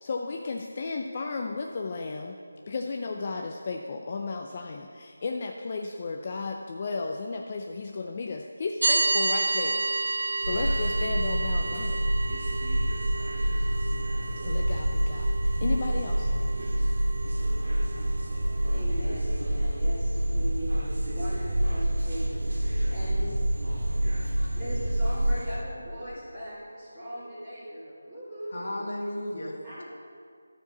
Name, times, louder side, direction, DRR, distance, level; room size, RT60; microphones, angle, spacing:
voice 1, 0.0-2.4 2.7-9.8 10.4-12.1 14.4-15.3 15.6-16.3, left 3 dB, 30° left, 2 dB, 0.4 m, -34 dB
sound 1, 8.8-18.8, right 2 dB, 50° right, 0.4 m, -32 dB
sound 2, 10.4-25.6, right 1 dB, 70° right, 2.5 m, -27 dB
voice 2, 18.7-23.3 24.5-28.9 29.6-29.9, equal, 5° right, -21 dB, 2.3 m, -39 dB
voice 3, 28.5-29.9, left 1 dB, 55° left, -2 dB, 2.1 m, -35 dB
12.0 x 4.7 x 6.8 m, 2.2 s
figure-of-eight pair, 175°, 0 cm